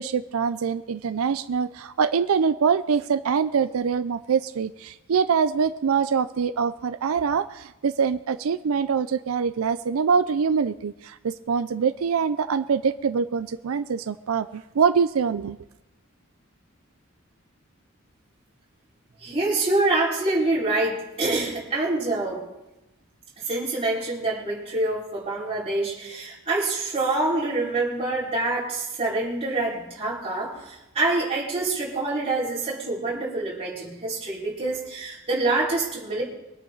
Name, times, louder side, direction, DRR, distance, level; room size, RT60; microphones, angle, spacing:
voice 1, 0.0-15.6, right 6 dB, 90° right, 12 dB, 0.5 m, -24 dB
voice 2, 19.2-22.5 23.4-36.2, right 2 dB, 30° right, -7 dB, 4.8 m, -26 dB
23.5 x 9.2 x 3.9 m, 0.97 s
head